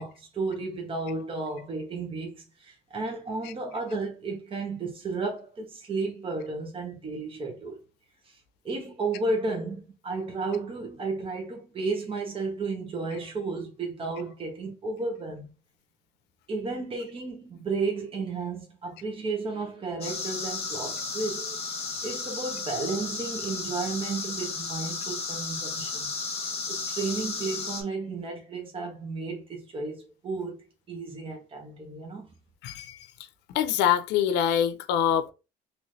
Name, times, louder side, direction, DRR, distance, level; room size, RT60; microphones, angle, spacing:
voice 1, 0.0-7.8 8.3-8.4 8.6-15.5 16.5-21.6 22.0-26.2 26.7-32.3, right 3 dB, 35° right, 1.1 m, -33 dB
sound 1, 20.0-27.8, left 4 dB, 40° left, 1.3 m, -34 dB
voice 2, 32.6-33.0 33.5-35.3, left 9 dB, 90° left, 0.5 m, -24 dB
3.1 x 3.0 x 2.6 m
cardioid pair, 110°, 17 cm